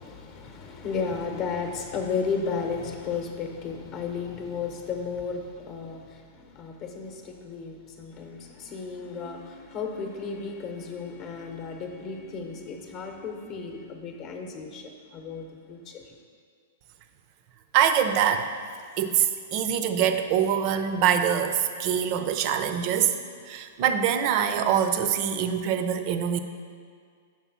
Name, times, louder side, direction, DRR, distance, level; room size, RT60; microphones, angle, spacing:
voice 1, 0.0-16.1, left 5 dB, 40° left, 3 dB, 0.8 m, -34 dB
voice 2, 17.7-18.5 19.0-23.2 23.5-26.4, right 9 dB, 45° right, 9 dB, 0.5 m, -24 dB
5.9 x 3.8 x 6.0 m, 2.1 s
hypercardioid pair, 130°, 0 cm